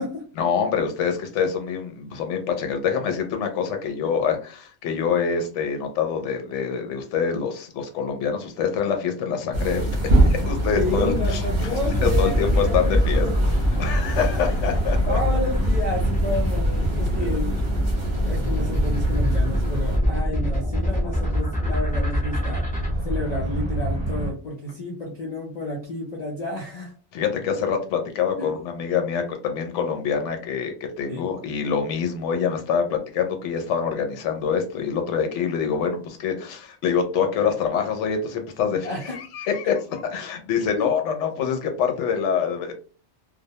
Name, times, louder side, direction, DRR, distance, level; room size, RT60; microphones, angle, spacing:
voice 1, 0.4-9.9 10.2-11.7 12.0-13.3 13.8-15.2 17.2-17.3 27.1-42.7, left 6 dB, 85° left, 5 dB, 0.9 m, -25 dB
sound 1, 9.5-20.0, right 1 dB, 45° right, 0.8 m, -25 dB
sound 2, 10.0-24.3, equal, 20° right, 1.0 m, -29 dB
voice 2, 10.7-13.4 15.1-17.6 18.2-22.6 23.0-26.9 28.4-28.6 31.1-31.3 38.8-39.2 40.7-40.9, left 2 dB, 50° left, -2 dB, 0.5 m, -31 dB
sound 3, 11.8-22.9, equal, 10° left, 0.6 m, -26 dB
2.2 x 2.1 x 2.7 m, 0.36 s
omnidirectional pair, 1.2 m